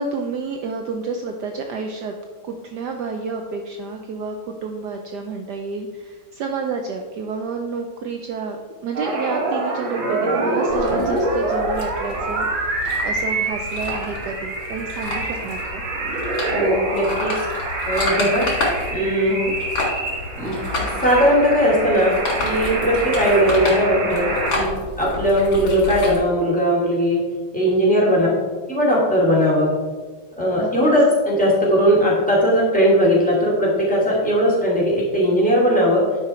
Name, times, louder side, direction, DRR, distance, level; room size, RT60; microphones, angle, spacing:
voice 1, 0.0-2.1 2.4-15.8 18.2-18.5 19.3-19.6 24.0-24.4 28.3-28.6 30.6-30.7, right 4 dB, 70° right, 4 dB, 1.1 m, -30 dB
sound 1, 8.9-24.5, right 2 dB, 90° right, 2.4 m, -26 dB
sound 2, 10.7-26.2, left 2 dB, 80° left, 3.1 m, -30 dB
voice 2, 16.5-17.3 17.8-18.5 18.9-19.4 20.4-22.2 22.4-24.3 24.5-24.7 25.0-27.2 27.5-28.3 28.7-29.8 30.4-36.0, equal, 5° left, -5 dB, 2.5 m, -18 dB
10.5 x 5.4 x 4.3 m, 1.4 s
omnidirectional pair, 2.1 m